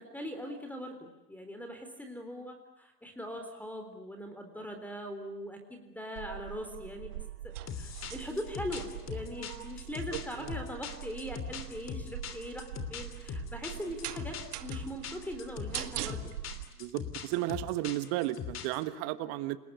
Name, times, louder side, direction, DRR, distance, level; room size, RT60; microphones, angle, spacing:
voice 1, 0.0-7.1 7.4-16.3, equal, 5° left, 5 dB, 3.8 m, -41 dB
sound 1, 6.2-16.7, right 13 dB, 65° right, 1.7 m, -43 dB
sound 2, 7.7-18.8, left 8 dB, 30° left, 3.1 m, -41 dB
voice 2, 16.8-19.6, right 16 dB, 50° right, 13 dB, 1.5 m, -33 dB
29.0 x 20.0 x 9.9 m, 0.98 s
hypercardioid pair, 90°, 48 cm